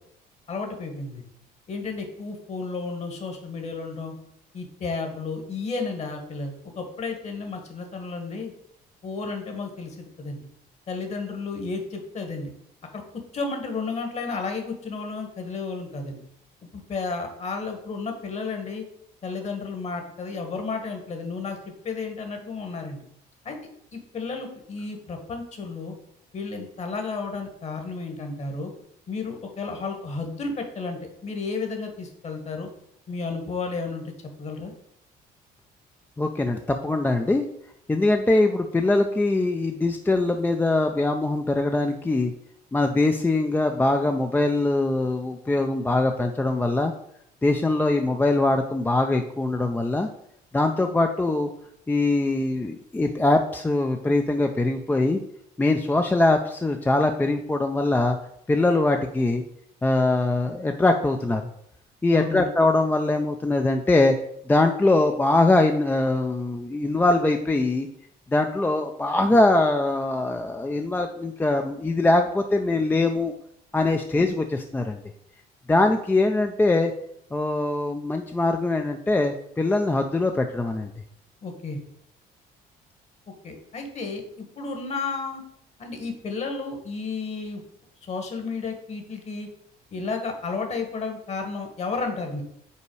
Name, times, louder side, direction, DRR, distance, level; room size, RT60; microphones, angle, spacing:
voice 1, 0.5-1.2 1.7-4.1 4.5-8.5 9.0-10.5 10.9-12.5 12.9-13.0 13.3-16.2 16.7-18.8 19.2-23.1 23.4-23.6 23.9-25.9 26.3-28.7 29.1-32.7 33.1-34.1 34.4-34.7 62.1-62.5 81.4-81.8 83.4-85.4 85.8-87.6 88.0-89.5 89.9-92.4, left 4 dB, 40° left, 4 dB, 1.4 m, -32 dB
voice 2, 36.2-37.4 37.9-42.3 42.7-46.9 47.4-50.1 50.5-51.5 51.9-55.2 55.6-58.2 58.5-59.4 59.8-61.4 62.0-64.2 64.5-67.9 68.3-73.3 73.7-75.0 75.7-76.9 77.3-80.9, left 2 dB, 10° left, 5 dB, 0.4 m, -22 dB
5.5 x 4.1 x 4.7 m, 0.72 s
cardioid pair, 110°, 17 cm